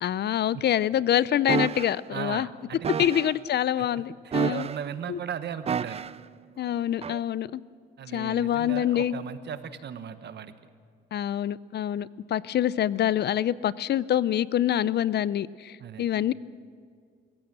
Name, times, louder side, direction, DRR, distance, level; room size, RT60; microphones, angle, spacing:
voice 1, 0.0-2.5 3.0-4.7 5.1-5.2 6.6-7.6 8.1-9.1 11.1-16.3, left 11 dB, 55° left, 20 dB, 0.5 m, -26 dB
sound 1, 1.5-1.9 2.8-3.3 4.3-4.9 5.7-6.2 7.0-7.2, right 7 dB, 30° right, 0.4 m, -29 dB
voice 2, 2.1-3.1 3.8-6.0 8.0-10.5 15.8-16.1, right 8 dB, 60° right, 11 dB, 1.2 m, -37 dB
23.5 x 15.0 x 7.5 m, 2.1 s
cardioid pair, 90°, 20 cm